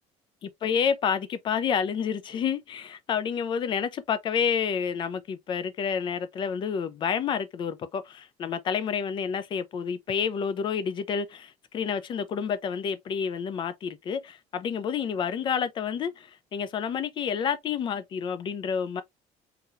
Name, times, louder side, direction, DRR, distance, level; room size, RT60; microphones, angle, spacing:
voice 1, 0.4-19.0, left 7 dB, 35° left, 0.5 m, -29 dB
3.9 x 2.8 x 2.6 m
cardioid pair, 160°, 14 cm